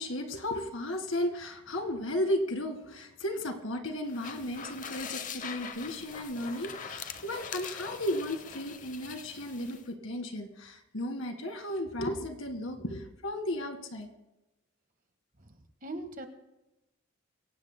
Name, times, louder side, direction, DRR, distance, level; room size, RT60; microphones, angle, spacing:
voice 1, 0.0-14.1, left 1 dB, 70° left, 6 dB, 1.8 m, -34 dB
sound 1, 4.0-9.8, left 6 dB, 40° left, 0.8 m, -42 dB
voice 2, 15.4-16.3, right 2 dB, 40° right, 6 dB, 1.5 m, -41 dB
24.5 x 17.0 x 2.2 m, 0.96 s
head